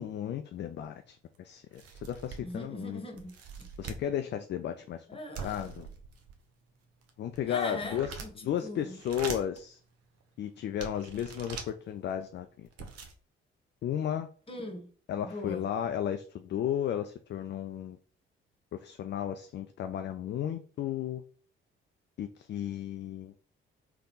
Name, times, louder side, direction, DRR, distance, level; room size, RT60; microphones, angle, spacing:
voice 1, 0.0-3.0 3.8-5.1 5.4-5.9 7.2-9.8 10.4-12.7 13.8-14.3 15.1-18.0 18.7-21.2 22.2-23.3, left 10 dB, 35° left, 0.4 m, -34 dB
sound 1, 0.8-0.9 1.3-1.4 1.7-2.6 3.2-4.1 5.3-6.4 7.0-8.5 8.9-9.6 10.2-10.3 10.8-11.7 12.4-12.5 12.7-13.1, right 5 dB, 50° right, 0.9 m, -43 dB
voice 2, 2.4-3.3 5.1-5.8 7.5-8.3 8.6-9.0 14.5-14.9 15.2-15.7, left 2 dB, 20° left, 1.3 m, -40 dB
3.4 x 2.8 x 3.8 m
figure-of-eight pair, 40°, 30 cm